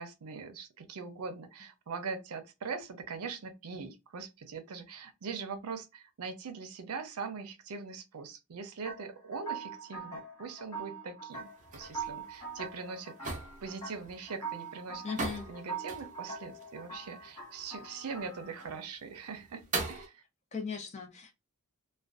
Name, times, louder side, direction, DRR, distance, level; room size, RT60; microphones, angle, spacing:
voice 1, 0.0-15.0 15.5-20.2, right 5 dB, 90° right, 0.5 m, -42 dB
sound 1, 8.8-18.8, right 5 dB, 15° left, 0.8 m, -43 dB
sound 2, 11.3-20.1, right 3 dB, 35° right, 0.5 m, -42 dB
voice 2, 15.0-15.5 20.5-21.3, left 5 dB, 30° left, 0.4 m, -38 dB
2.4 x 2.1 x 2.3 m
head